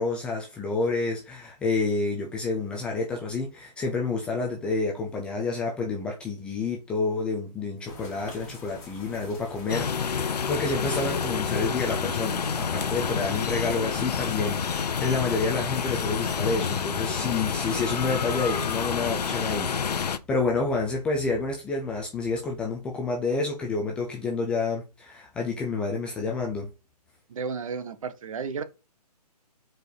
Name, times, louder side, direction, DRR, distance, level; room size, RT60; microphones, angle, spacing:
voice 1, 0.0-26.7, left 3 dB, 5° left, 0.4 m, -29 dB
sound 1, 7.8-17.7, left 3 dB, 25° left, 2.0 m, -44 dB
sound 2, 9.7-20.2, left 6 dB, 70° left, 0.7 m, -28 dB
voice 2, 27.3-28.6, right 5 dB, 55° right, 1.0 m, -33 dB
5.0 x 4.5 x 4.7 m
hypercardioid pair, 150°, 21 cm